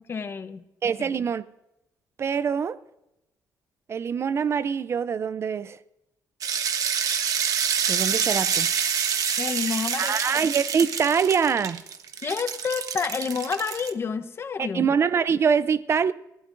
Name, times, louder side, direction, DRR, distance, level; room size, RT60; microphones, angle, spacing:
voice 1, 0.1-0.6 1.0-1.1 9.4-10.4 12.2-14.9, left 5 dB, 35° left, 0.9 m, -29 dB
voice 2, 0.8-1.4 2.2-2.8 3.9-5.8 7.9-8.7 10.0-11.8 14.6-16.1, right 6 dB, 40° right, 0.4 m, -24 dB
sound 1, 6.4-13.9, right 7 dB, 60° right, 1.1 m, -27 dB
20.5 x 16.0 x 2.5 m
cardioid pair, 130°, 7 cm